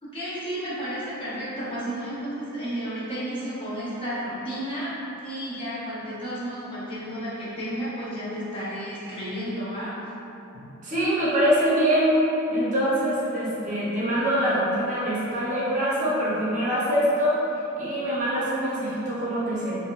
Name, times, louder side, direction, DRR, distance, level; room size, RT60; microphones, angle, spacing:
voice 1, 0.0-9.9, equal, 25° left, -10 dB, 0.8 m, -32 dB
voice 2, 10.8-12.2 12.5-17.4 17.8-19.9, equal, 40° right, -8 dB, 0.7 m, -24 dB
3.4 x 2.6 x 2.4 m, 2.9 s
head